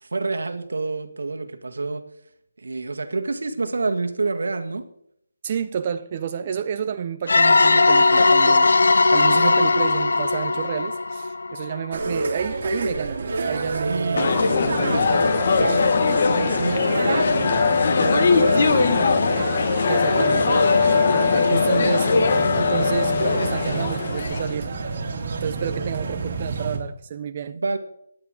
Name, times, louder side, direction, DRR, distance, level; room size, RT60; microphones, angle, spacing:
voice 1, 0.0-2.0 2.6-4.8 13.8-15.2 15.5-17.5 18.0-19.0 27.5-27.8, right 3 dB, 80° right, 1.5 m, -28 dB
voice 2, 5.4-8.7 9.1-15.3 19.9-20.6 21.5-24.7 25.3-27.6, right 8 dB, 30° right, 0.5 m, -30 dB
sound 1, 7.3-11.9, left 3 dB, 80° left, 0.5 m, -18 dB
sound 2, 11.9-26.8, right 4 dB, 45° right, 2.6 m, -29 dB
sound 3, 14.1-24.5, left 5 dB, 45° left, 1.4 m, -20 dB
17.0 x 10.5 x 3.6 m
hypercardioid pair, 165°, 0 cm